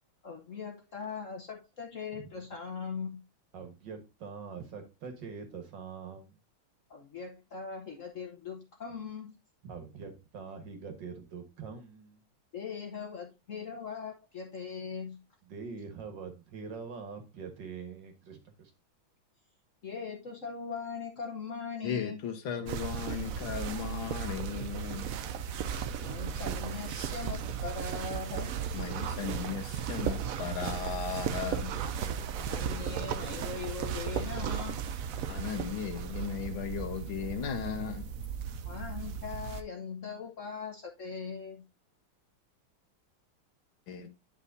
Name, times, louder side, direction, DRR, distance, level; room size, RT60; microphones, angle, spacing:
voice 1, 0.2-3.2 6.9-9.4 12.5-15.2 19.8-22.2 26.0-28.5 32.3-34.8 38.6-41.7, left 5 dB, 50° left, 1.1 m, -40 dB
voice 2, 3.5-6.4 9.6-12.2 15.5-18.7, right 5 dB, 65° right, 2.1 m, -44 dB
voice 3, 21.8-25.1 28.7-31.7 35.3-38.1 43.9-44.1, left 7 dB, 75° left, 1.8 m, -36 dB
sound 1, 22.7-39.6, right 7 dB, 80° right, 0.7 m, -35 dB
9.7 x 5.5 x 2.7 m
omnidirectional pair, 2.2 m